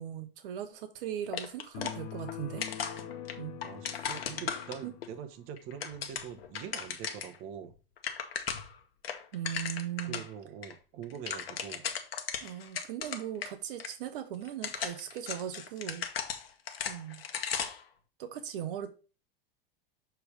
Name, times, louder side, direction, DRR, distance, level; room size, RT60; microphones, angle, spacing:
voice 1, 0.0-2.7 3.4-3.6 4.8-4.9 9.3-10.2 12.4-16.1 16.9-17.2 18.2-18.9, right 10 dB, 65° right, 1.0 m, -38 dB
sound 1, 1.3-2.4 2.6-5.1 5.6-7.4 7.7-7.8 8.0-8.8 9.0-10.3 10.6-10.7 11.0-13.5 13.8-13.9 14.5-17.9, left 7 dB, 85° left, 1.0 m, -37 dB
sound 2, 1.7-5.3, left 11 dB, 55° left, 1.1 m, -44 dB
voice 2, 3.6-7.7 10.0-11.8, right 8 dB, 45° right, 1.0 m, -44 dB
7.0 x 3.5 x 4.9 m
hypercardioid pair, 100°, 29 cm